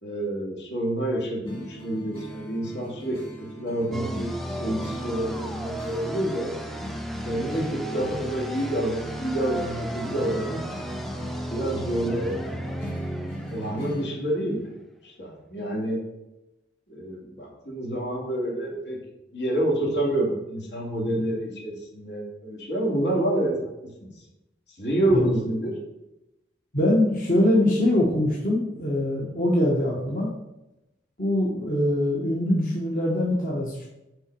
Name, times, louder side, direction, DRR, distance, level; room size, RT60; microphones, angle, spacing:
voice 1, 0.0-3.2 3.6-6.5 7.2-10.6 11.5-12.3 13.5-14.6 15.0-16.0 16.9-19.0 19.3-24.1 24.8-25.8, right 1 dB, 75° left, -3 dB, 2.7 m, -28 dB
sound 1, 1.4-14.0, right 1 dB, 30° left, 2.0 m, -40 dB
sound 2, 3.9-14.5, equal, ahead, 0.4 m, -35 dB
voice 2, 26.7-30.3 31.2-33.8, left 1 dB, 50° left, -4 dB, 1.3 m, -23 dB
6.2 x 5.0 x 6.8 m, 0.93 s
head